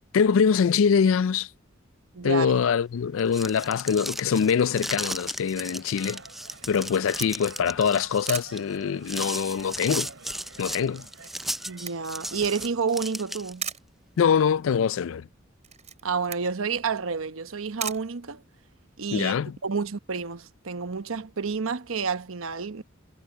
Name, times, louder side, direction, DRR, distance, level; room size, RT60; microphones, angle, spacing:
voice 1, 0.1-1.5 2.2-6.2 6.7-10.1 10.6-11.1 14.2-15.3 19.1-19.6, left 6 dB, 75° left, 0.4 m, -23 dB
voice 2, 2.1-2.5 11.7-13.7 16.0-18.4 19.0-19.3 19.6-22.8, right 5 dB, 90° right, 1.0 m, -29 dB
sound 1, 3.1-13.7, right 1 dB, ahead, 0.3 m, -35 dB
sound 2, 5.6-12.7, right 4 dB, 70° right, 6.5 m, -48 dB
Camera, 6.5-18.9, right 8 dB, 35° right, 4.8 m, -41 dB
head